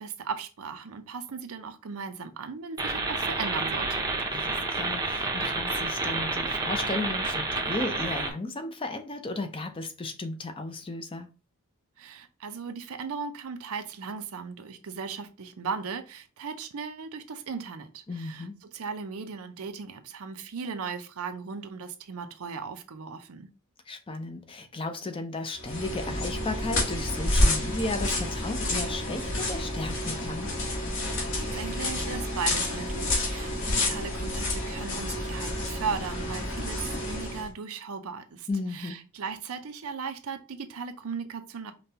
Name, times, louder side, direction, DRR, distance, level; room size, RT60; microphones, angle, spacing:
voice 1, 0.0-4.1 12.0-23.5 31.3-41.7, right 5 dB, 80° right, 0.5 m, -37 dB
sound 1, 2.8-8.3, right 3 dB, 15° right, 0.6 m, -29 dB
voice 2, 4.3-11.3 18.1-18.6 23.9-30.5 38.5-39.0, left 2 dB, 25° left, 0.5 m, -34 dB
sound 2, 25.6-37.5, left 1 dB, 60° left, 1.4 m, -29 dB
5.1 x 2.2 x 2.7 m
head